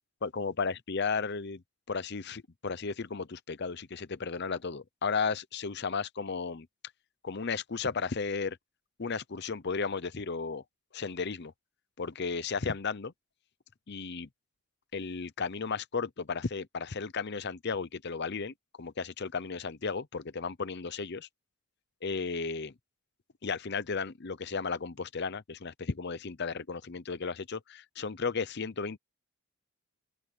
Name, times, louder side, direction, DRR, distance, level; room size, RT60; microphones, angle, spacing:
voice 1, 0.2-1.6 1.9-6.7 7.2-8.6 9.0-10.6 10.9-11.5 12.0-13.1 13.9-14.3 14.9-21.3 22.0-22.7 23.4-29.0, left 5 dB, 50° left, 0.7 m, -34 dB
open air
head